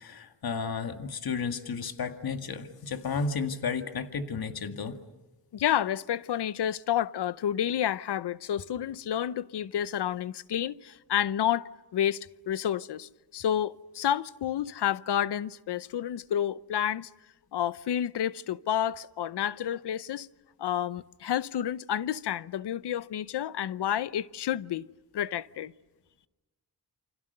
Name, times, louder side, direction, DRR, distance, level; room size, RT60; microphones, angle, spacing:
voice 1, 0.0-5.0, left 5 dB, 65° left, 2.0 m, -33 dB
voice 2, 5.5-17.1 17.5-20.3 20.6-24.9 25.1-25.7, left 10 dB, 90° left, 0.8 m, -30 dB
29.5 x 25.5 x 6.7 m
wide cardioid pair, 110°, 40 cm